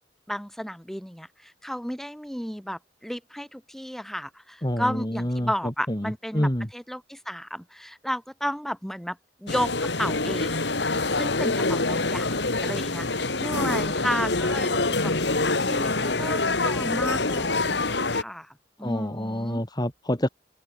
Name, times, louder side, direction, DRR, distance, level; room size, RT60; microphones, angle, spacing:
voice 1, 0.3-10.7 11.2-18.5 18.8-19.6, equal, ahead, 5.8 m, -33 dB
voice 2, 4.6-6.7 18.8-20.3, equal, 20° left, 3.1 m, -28 dB
sound 1, 9.5-18.2, left 3 dB, 65° left, 2.6 m, -25 dB
head